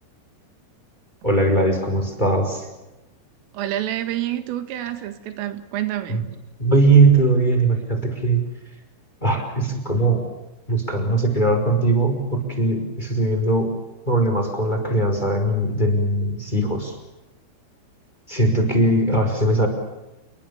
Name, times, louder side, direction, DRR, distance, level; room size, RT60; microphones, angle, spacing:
voice 1, 1.2-2.7 6.1-6.2 6.6-8.4 9.2-10.3 10.7-13.7 14.0-16.9 18.3-19.7, right 2 dB, 10° left, 5 dB, 4.8 m, -20 dB
voice 2, 3.5-6.2, right 13 dB, 90° right, 10 dB, 4.4 m, -28 dB
29.5 x 22.5 x 7.2 m, 0.99 s
omnidirectional pair, 5.7 m